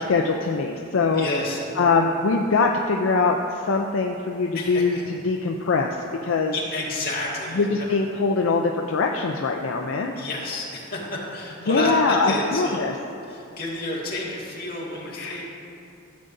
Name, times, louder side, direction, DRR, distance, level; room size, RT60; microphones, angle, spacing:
voice 1, 0.1-1.3 1.8-6.0 6.2-6.5 7.6-10.1 11.7-12.9 15.1-15.5, left 4 dB, 70° left, 2 dB, 0.5 m, -22 dB
voice 2, 1.1-1.6 4.5-5.0 6.5-7.9 10.1-13.0 13.2-15.5, left 2 dB, 45° left, -5 dB, 1.9 m, -30 dB
14.5 x 7.7 x 2.6 m, 2.6 s
head